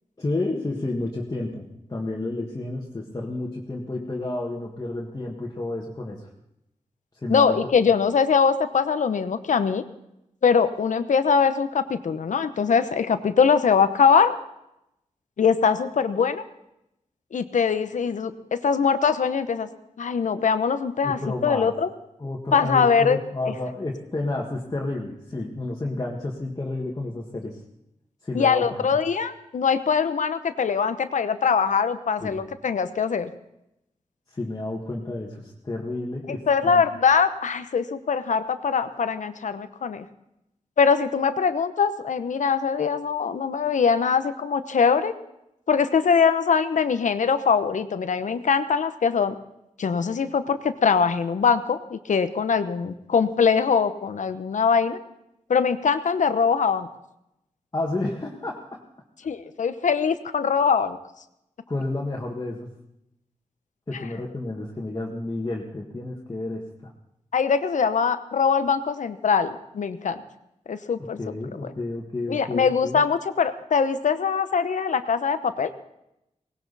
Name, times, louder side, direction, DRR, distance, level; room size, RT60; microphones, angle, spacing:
voice 1, 0.2-6.3 7.1-7.6 21.0-21.7 22.2-27.6 28.2-28.9 32.2-32.4 34.3-36.5 36.7-36.8 57.7-58.8 61.7-62.7 63.9-66.9 71.2-73.0, left 2 dB, 30° left, -3 dB, 1.8 m, -31 dB
voice 2, 7.3-9.8 10.4-14.3 15.4-16.4 17.3-19.7 20.0-21.9 22.5-23.2 23.5-23.6 28.3-33.3 36.3-40.0 40.8-45.1 45.7-49.4 49.8-55.0 55.5-56.9 59.2-61.0 67.3-70.2 70.7-71.3 71.6-71.7 72.3-75.7, left 6 dB, 85° left, 11 dB, 1.0 m, -22 dB
18.5 x 18.0 x 4.1 m, 0.83 s
wide cardioid pair, 100°, 12 cm